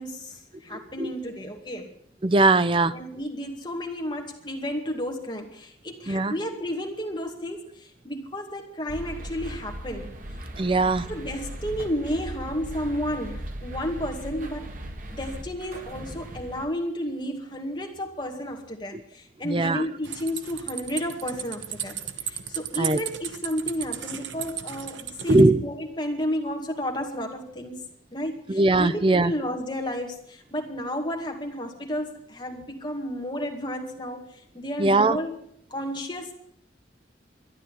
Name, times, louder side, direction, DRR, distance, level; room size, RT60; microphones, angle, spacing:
voice 1, 0.0-1.9 2.9-10.1 11.1-14.7 15.1-27.8 28.1-35.4 35.7-36.3, equal, 25° left, 2 dB, 2.2 m, -32 dB
voice 2, 0.7-1.1 2.2-2.9 6.1-6.3 10.6-11.1 18.9-19.0 19.4-19.9 22.8-23.0 25.3-25.6 28.5-29.3 34.8-35.2, right 2 dB, 25° right, 14 dB, 0.5 m, -20 dB
sound 1, 8.9-16.7, right 1 dB, 45° right, 1.7 m, -38 dB
sound 2, 20.0-25.5, right 9 dB, 80° right, 1.1 m, -35 dB
13.0 x 10.5 x 9.7 m, 0.67 s
head